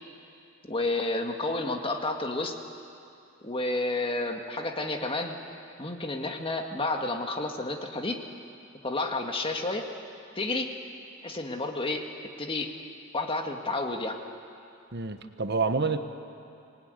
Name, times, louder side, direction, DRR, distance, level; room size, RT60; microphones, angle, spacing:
voice 1, 0.7-2.5 3.4-5.4 5.8-8.2 8.8-9.9 10.4-10.7 11.2-12.0 12.4-12.7 13.1-14.2, left 2 dB, 30° left, 3 dB, 1.9 m, -30 dB
voice 2, 14.9-16.0, right 4 dB, 55° right, 8 dB, 1.2 m, -28 dB
25.5 x 19.5 x 9.6 m, 2.6 s
head